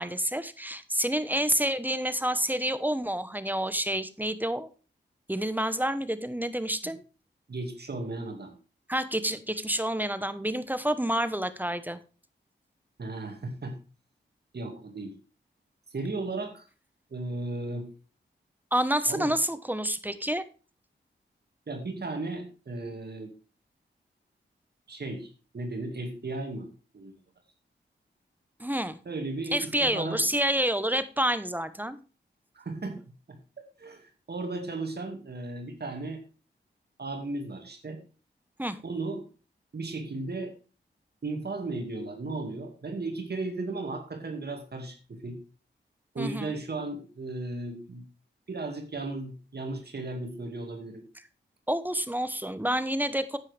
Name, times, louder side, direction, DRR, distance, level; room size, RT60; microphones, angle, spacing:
voice 1, 0.0-4.7 5.3-7.0 8.9-12.0 18.7-20.4 28.6-29.0 29.5-32.0 38.6-38.8 46.2-46.5 51.7-53.4, right 1 dB, 10° right, 13 dB, 1.1 m, -28 dB
voice 2, 7.5-8.5 13.0-13.7 14.5-15.2 15.9-16.7 17.1-17.9 19.1-19.3 21.7-23.3 24.9-26.7 26.9-27.1 29.1-30.2 32.5-33.0 33.3-36.2 37.0-38.0 38.8-39.2 39.7-40.5 41.2-45.4 46.1-48.0 48.5-51.0, right 2 dB, 55° right, 4 dB, 2.1 m, -35 dB
9.6 x 8.7 x 3.4 m, 0.35 s
cardioid pair, 45°, 20 cm